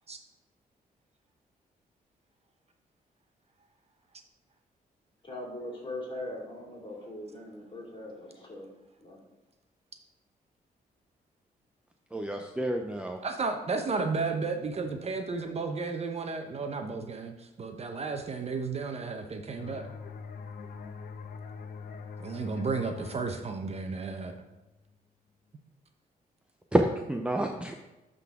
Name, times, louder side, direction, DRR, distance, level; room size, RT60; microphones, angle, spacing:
voice 1, 5.2-8.7 9.0-9.2, left 1 dB, 35° left, -2 dB, 2.5 m, -40 dB
voice 2, 12.1-13.2 26.7-27.7, right 1 dB, 5° right, 3 dB, 0.5 m, -28 dB
voice 3, 13.2-19.9 22.2-24.3, right 4 dB, 45° right, 5 dB, 0.7 m, -33 dB
sound 1, 19.6-25.0, left 5 dB, 75° left, 0.7 m, -44 dB
11.5 x 3.9 x 3.6 m, 1.0 s
cardioid pair, 90°, 16 cm